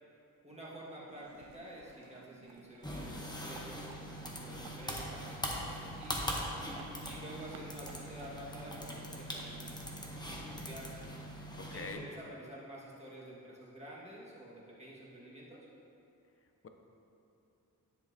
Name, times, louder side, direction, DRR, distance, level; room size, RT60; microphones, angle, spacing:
voice 1, 0.4-6.5 7.0-11.1 11.7-15.7, right 1 dB, 20° right, -6 dB, 1.6 m, -50 dB
sound 1, 1.1-9.7, right 5 dB, 70° right, 0.6 m, -56 dB
sound 2, 2.8-11.9, equal, 10° left, 0.9 m, -41 dB
voice 2, 11.5-12.0, left 4 dB, 40° left, 5 dB, 0.6 m, -43 dB
10.5 x 7.3 x 2.7 m, 2.7 s
wide cardioid pair, 130°, 35 cm